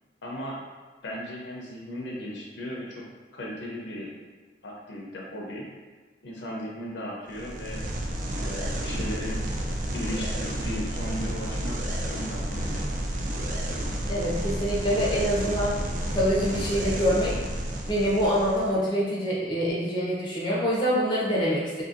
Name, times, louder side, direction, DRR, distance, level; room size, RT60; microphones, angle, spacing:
voice 1, 0.2-0.6 1.0-3.0 3.3-4.1 4.6-5.7 6.2-7.8 8.4-9.4 9.9-12.8, left 1 dB, 75° left, -2 dB, 0.6 m, -36 dB
sound 1, 7.3-18.7, right 1 dB, 45° right, 0.3 m, -31 dB
voice 2, 14.1-15.8 16.1-17.4 17.8-21.8, equal, 25° left, -6 dB, 0.5 m, -25 dB
2.6 x 2.6 x 2.5 m, 1.4 s
head